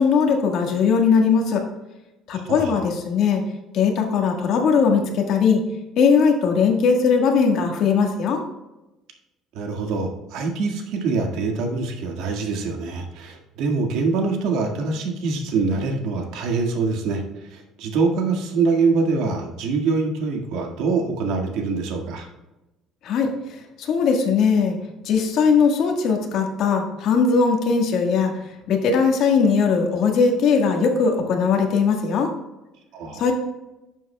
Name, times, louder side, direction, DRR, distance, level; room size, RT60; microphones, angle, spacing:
voice 1, 0.0-1.6 2.3-3.4 3.7-5.6 6.0-8.4 23.0-23.3 23.8-24.7 25.0-28.3 28.7-32.3 33.2-33.3, left 5 dB, 55° left, 2 dB, 1.6 m, -19 dB
voice 2, 2.5-2.8 9.5-17.2 17.5-22.3 32.9-33.2, right 4 dB, 70° right, 3 dB, 1.7 m, -24 dB
11.5 x 7.5 x 2.3 m, 1.0 s
cardioid pair, 150°, 0 cm